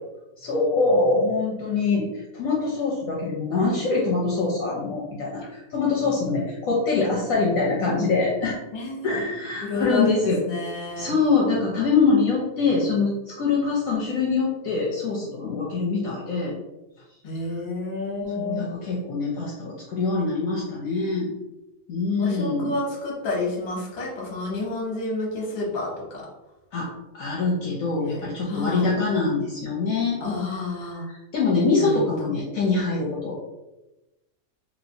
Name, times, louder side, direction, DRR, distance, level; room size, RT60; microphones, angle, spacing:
voice 1, 0.4-8.6 9.0-10.4 11.0-16.5 18.3-21.3 21.9-22.7 26.7-30.2 31.1-33.4, left 3 dB, 65° left, -4 dB, 0.9 m, -24 dB
voice 2, 8.7-9.2 9.6-11.1 17.2-18.6 22.2-26.3 28.0-28.2 28.5-28.9 30.2-31.1 31.8-32.3, left 3 dB, 40° left, -3 dB, 0.7 m, -30 dB
3.1 x 2.9 x 2.6 m, 1.0 s
omnidirectional pair, 1.8 m